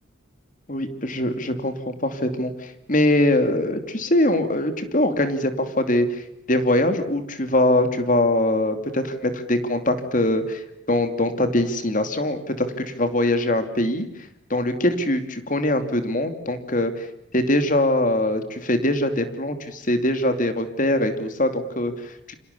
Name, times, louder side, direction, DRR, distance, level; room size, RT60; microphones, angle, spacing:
voice 1, 0.7-6.2 6.5-10.6 10.9-14.0 14.5-17.1 17.3-22.3, left 1 dB, 45° left, 8 dB, 2.8 m, -22 dB
29.5 x 26.0 x 7.0 m, 0.81 s
head